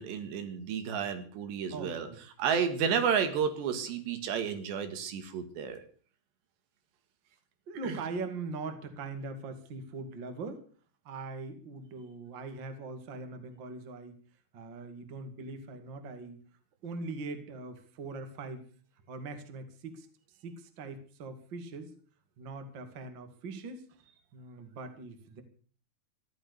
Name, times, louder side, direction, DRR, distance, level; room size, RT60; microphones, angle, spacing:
voice 1, 0.0-2.1 2.4-5.8 7.8-7.9, right 7 dB, 80° right, 8 dB, 4.0 m, -31 dB
voice 2, 1.7-2.2 7.7-10.6 11.0-14.2 14.5-16.4 16.8-18.6 19.1-20.1 20.4-21.9 22.4-23.8 24.3-25.4, right 3 dB, 35° right, 7 dB, 2.0 m, -41 dB
14.5 x 12.0 x 6.8 m, 0.44 s
omnidirectional pair, 5.0 m